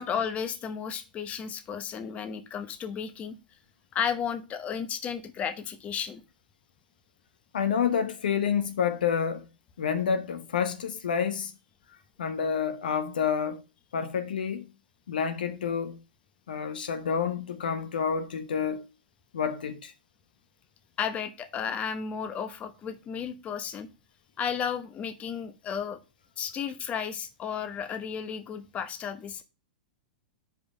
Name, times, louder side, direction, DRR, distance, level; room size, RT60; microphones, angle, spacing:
voice 1, 0.0-3.4 3.9-6.2 21.0-23.9 24.4-26.0 26.4-29.4, left 7 dB, 25° left, 0.9 m, -33 dB
voice 2, 7.5-9.5 9.8-11.5 12.2-13.6 13.9-14.7 15.1-16.0 16.5-18.8 19.3-19.9, left 7 dB, 70° left, 0.8 m, -28 dB
5.2 x 5.0 x 6.3 m
hypercardioid pair, 100°, 5 cm